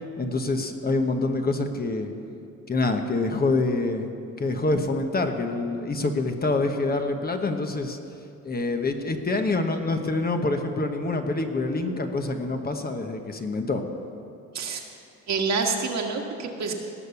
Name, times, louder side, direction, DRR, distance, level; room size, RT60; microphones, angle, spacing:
voice 1, 0.2-2.1 2.7-4.1 4.4-8.0 8.4-13.8, left 2 dB, 30° left, 5 dB, 1.1 m, -26 dB
voice 2, 15.3-16.7, right 4 dB, 60° right, 2 dB, 1.7 m, -27 dB
18.5 x 6.7 x 7.0 m, 2.7 s
cardioid pair, 90°, 30 cm